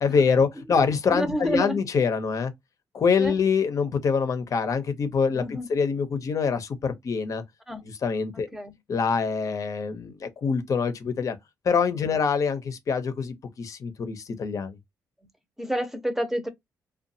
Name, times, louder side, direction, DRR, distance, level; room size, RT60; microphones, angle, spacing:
voice 1, 0.0-2.5 2.9-7.4 7.8-8.5 8.9-11.4 11.6-14.8, left 5 dB, 50° left, 0.8 m, -25 dB
voice 2, 1.1-1.8 3.2-3.3 5.4-5.7 7.7-7.8 8.3-8.7 12.0-12.2 15.6-16.5, equal, 5° right, 0.8 m, -29 dB
2.6 x 2.4 x 2.7 m
cardioid pair, 75°, 7 cm